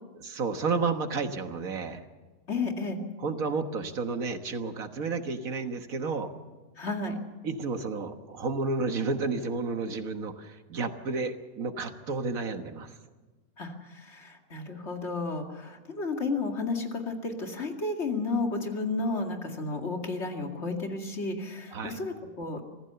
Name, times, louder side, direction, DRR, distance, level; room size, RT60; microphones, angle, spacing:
voice 1, 0.2-2.0 3.2-6.3 7.4-12.9 21.7-22.0, right 4 dB, 65° right, 7 dB, 1.8 m, -31 dB
voice 2, 2.5-3.0 6.8-7.2 13.6-22.6, left 3 dB, 45° left, 3 dB, 2.6 m, -32 dB
25.5 x 15.5 x 6.9 m, 1.3 s
omnidirectional pair, 1.6 m